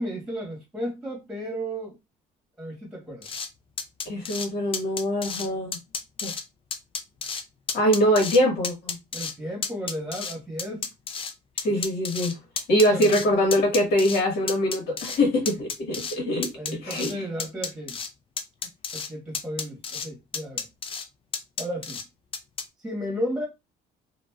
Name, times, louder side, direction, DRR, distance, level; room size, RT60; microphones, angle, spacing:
voice 1, 0.0-2.0 2.6-3.3 9.1-10.9 12.9-13.1 16.5-18.0 18.9-20.7 21.6-22.0 22.8-23.5, equal, 5° right, 1.3 m, -33 dB
sound 1, 3.2-3.5 3.8-4.5 4.7-5.5 5.7-6.4 6.7-7.4 7.7-8.4 8.6-9.3 9.6-11.3 11.6-13.3 13.5-14.2 14.5-15.2 15.5-16.2 16.4-17.1 17.4-18.1 18.4-19.1 19.3-20.1 20.3-21.0 21.3-22.0 22.3-22.6, left 5 dB, 35° left, 0.4 m, -31 dB
voice 2, 4.0-5.8 6.2-6.3 7.7-9.0 11.6-12.3 12.7-16.5 16.8-17.3, equal, 70° left, 1.6 m, -23 dB
3.0 x 2.5 x 2.3 m
cardioid pair, 110°, 17 cm